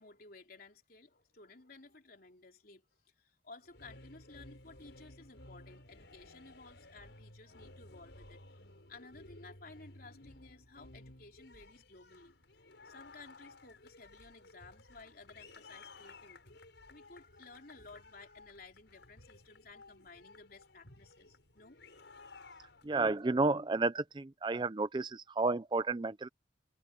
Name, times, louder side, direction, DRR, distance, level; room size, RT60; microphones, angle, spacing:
voice 1, 0.0-16.6 16.9-21.8, left 3 dB, 50° left, 3.6 m, -56 dB
sound 1, 3.6-23.2, left 2 dB, 70° left, 5.8 m, -56 dB
voice 2, 22.8-26.3, right 3 dB, 25° right, 0.5 m, -31 dB
head